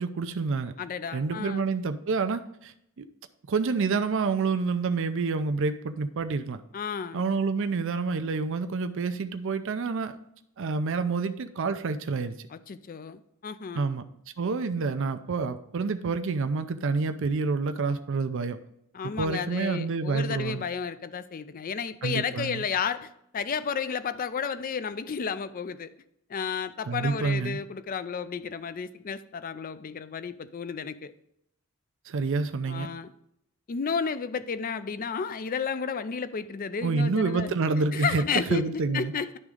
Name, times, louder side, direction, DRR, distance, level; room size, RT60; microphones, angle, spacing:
voice 1, 0.0-0.7 1.1-3.1 3.5-6.6 7.1-10.2 10.6-12.5 13.7-14.0 14.4-18.6 19.2-20.6 22.0-22.6 26.9-27.6 32.1-32.9 36.8-39.1, right 4 dB, 60° right, 0.5 m, -28 dB
voice 2, 0.8-1.7 6.7-7.2 12.7-13.9 18.9-25.9 26.3-31.1 32.7-33.1 33.7-37.5 37.9-38.7 38.9-39.4, left 6 dB, 40° left, 0.4 m, -32 dB
11.0 x 3.6 x 5.0 m
head